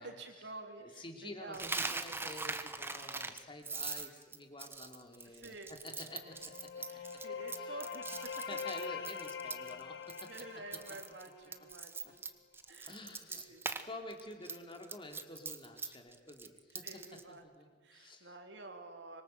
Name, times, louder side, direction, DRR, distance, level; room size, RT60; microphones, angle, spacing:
voice 1, 0.0-1.7 5.2-5.7 6.9-8.5 10.3-12.2 12.7-12.9 13.3-13.9 16.8-17.4 17.8-19.2, right 2 dB, 65° right, 4 dB, 3.2 m, -49 dB
voice 2, 0.8-7.2 7.5-7.8 8.5-11.0 12.0-12.1 12.6-13.6 13.8-18.4, left 1 dB, 25° left, 3 dB, 3.1 m, -50 dB
Coin (dropping), 1.5-9.8 10.1-10.4 10.7-13.8 14.1-17.2, right 3 dB, 10° right, 1.2 m, -41 dB
sound 1, 6.1-11.8, left 6 dB, 65° left, 1.6 m, -44 dB
26.0 x 23.0 x 7.9 m, 1.4 s
head